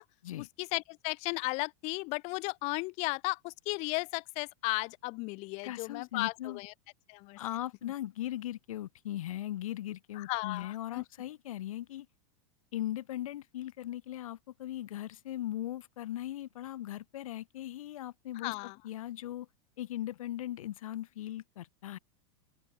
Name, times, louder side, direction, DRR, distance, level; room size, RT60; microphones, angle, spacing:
voice 1, 0.6-6.7 7.1-7.4 10.2-11.0 18.4-18.8, left 27 dB, 40° left, 0.7 m, -35 dB
voice 2, 5.6-6.6 7.4-12.1 12.7-19.5 19.8-22.0, left 13 dB, 90° left, 2.9 m, -39 dB
open air
supercardioid pair, 150°, 17 cm